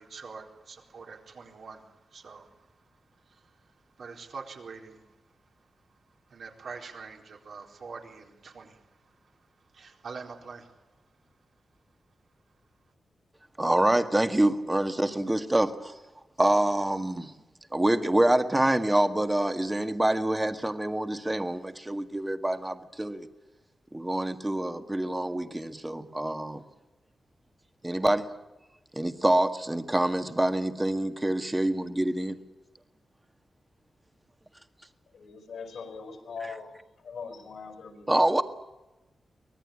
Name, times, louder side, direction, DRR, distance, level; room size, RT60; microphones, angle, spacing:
voice 1, 0.0-2.7 3.3-5.1 6.3-9.2 9.7-10.8, right 5 dB, 70° right, 2 dB, 4.2 m, -45 dB
voice 2, 13.6-15.9 16.4-17.3 17.7-23.3 23.9-26.6 27.8-28.3 28.9-32.4 38.1-38.4, right 1 dB, 15° right, 8 dB, 1.8 m, -26 dB
voice 3, 35.1-36.7 37.0-38.1, left 5 dB, 80° left, 7 dB, 5.6 m, -41 dB
24.5 x 19.5 x 8.7 m, 1.0 s
wide cardioid pair, 110°, 0 cm